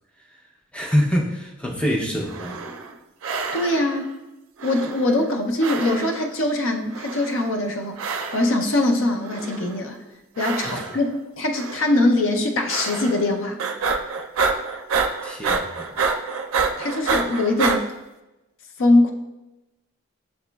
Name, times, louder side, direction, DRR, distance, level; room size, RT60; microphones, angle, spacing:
voice 1, 0.7-2.6 10.6-10.8 15.2-16.0, equal, 5° left, -2 dB, 0.5 m, -25 dB
sound 1, 2.2-2.9 3.2-4.0 4.6-5.3 5.6-6.3 6.9-7.6 8.0-8.6 9.2-9.9 10.4-11.1 11.5-12.0 12.7-13.3 13.6-17.8, right 4 dB, 75° right, 0.4 m, -27 dB
voice 2, 3.5-4.1 4.6-10.0 10.4-13.6 16.8-17.9 18.8-19.1, left 2 dB, 65° left, 3 dB, 0.5 m, -22 dB
7.7 x 2.9 x 2.2 m, 0.99 s
head